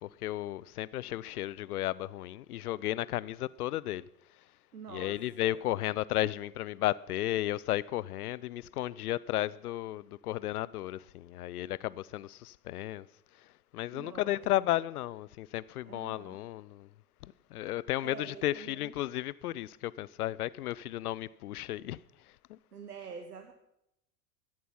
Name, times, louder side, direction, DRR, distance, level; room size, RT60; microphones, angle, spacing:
voice 1, 0.0-4.1 4.9-13.1 13.4-16.9 17.2-22.0 22.5-22.6, left 14 dB, 75° left, 0.6 m, -34 dB
voice 2, 4.7-5.6 13.9-14.4 15.9-16.4 18.0-19.0 22.7-23.5, right 6 dB, 90° right, 1.2 m, -46 dB
15.0 x 11.0 x 5.8 m
hypercardioid pair, 90°, 45 cm